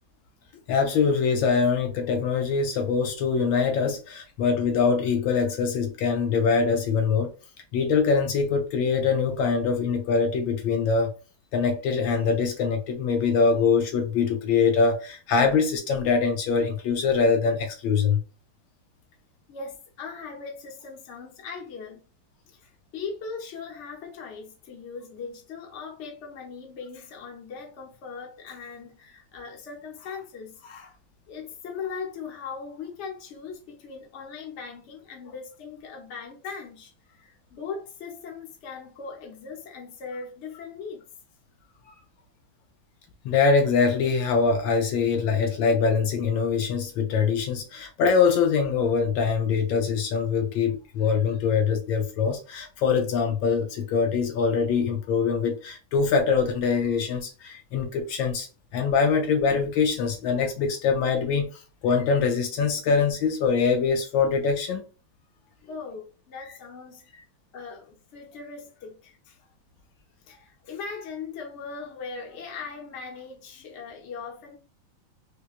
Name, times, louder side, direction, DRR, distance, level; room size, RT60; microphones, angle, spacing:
voice 1, 0.7-7.3 7.7-11.1 11.5-18.2 43.2-58.5 58.7-64.8, left 5 dB, 75° left, 1.3 m, -23 dB
voice 2, 19.5-22.0 22.5-31.0 31.3-41.0 65.6-67.1 67.5-69.5 70.2-74.6, left 5 dB, 45° left, 0.9 m, -39 dB
4.5 x 2.3 x 2.4 m
omnidirectional pair, 2.2 m